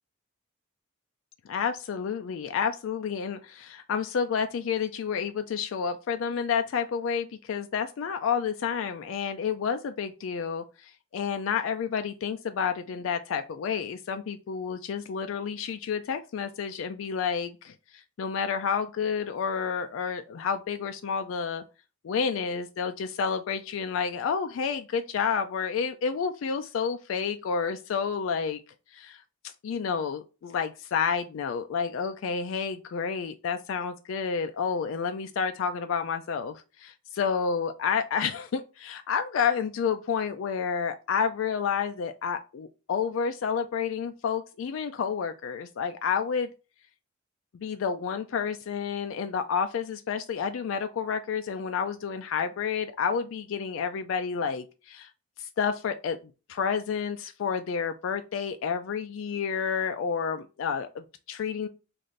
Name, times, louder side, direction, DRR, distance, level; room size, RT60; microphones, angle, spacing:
voice 1, 1.5-21.6 22.0-28.6 28.9-29.2 29.6-46.5 47.5-55.1 55.4-56.2 56.5-61.7, left 6 dB, 70° left, 0.3 m, -30 dB
3.2 x 2.5 x 3.9 m
head